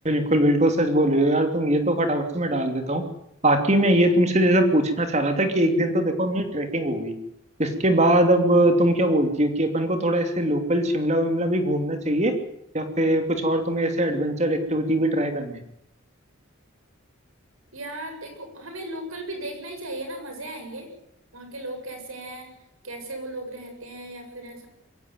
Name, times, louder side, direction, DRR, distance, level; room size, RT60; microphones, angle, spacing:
voice 1, 0.0-3.0 3.4-7.2 7.6-12.3 12.7-15.6, right 1 dB, 30° right, 6 dB, 3.0 m, -21 dB
voice 2, 17.7-20.9 21.3-22.5 22.8-24.7, right 1 dB, 80° right, 4 dB, 7.7 m, -36 dB
22.5 x 17.0 x 9.4 m, 0.77 s
head